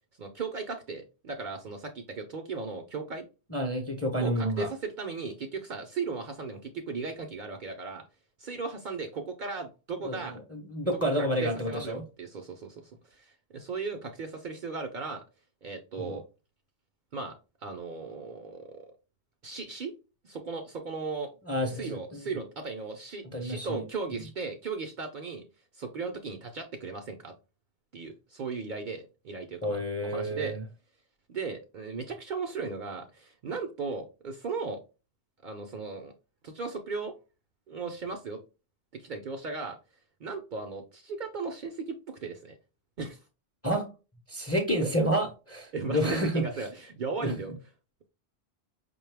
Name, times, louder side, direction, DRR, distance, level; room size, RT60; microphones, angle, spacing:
voice 1, 0.2-3.2 4.2-8.0 8.4-10.4 10.9-12.8 13.1-15.2 15.6-16.2 17.1-18.8 19.4-19.9 20.2-21.3 21.6-25.4 25.7-27.3 27.9-30.6 31.3-34.8 35.4-36.1 36.4-37.1 37.7-38.4 38.9-39.8 40.2-42.6 43.0-43.2 44.8-44.9 45.7-47.5, right 4 dB, 55° right, 0.6 m, -36 dB
voice 2, 3.5-4.7 10.0-12.0 16.0-16.2 21.5-22.3 23.3-23.8 24.1-24.2 29.6-30.6 43.6-43.9 44.3-46.4 47.2-47.3, equal, 15° left, 0.6 m, -29 dB
5.2 x 2.2 x 3.3 m
omnidirectional pair, 1.1 m